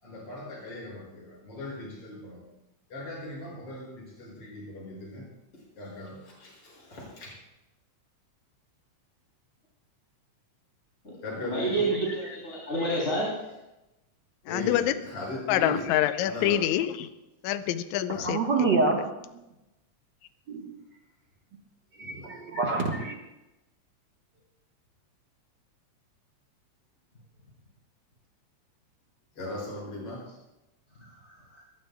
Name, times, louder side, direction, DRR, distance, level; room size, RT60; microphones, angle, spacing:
voice 1, 0.0-2.4 2.9-5.2 5.8-7.3 11.2-11.8 14.5-15.9 16.2-16.6 18.1-18.3 22.0-22.3 29.4-30.2, left 1 dB, 45° left, -4 dB, 7.3 m, -38 dB
voice 2, 11.4-13.3 31.0-31.6, right 2 dB, 25° left, -6 dB, 3.8 m, -29 dB
voice 3, 11.9-12.3 12.8-13.0 18.2-19.3 20.5-20.8 22.0-23.1, right 3 dB, 45° right, 0 dB, 1.6 m, -28 dB
voice 4, 14.5-15.0 15.5-17.1 17.4-18.4, left 12 dB, 80° left, 10 dB, 2.0 m, -26 dB
22.0 x 20.5 x 2.3 m, 0.96 s
omnidirectional pair, 3.5 m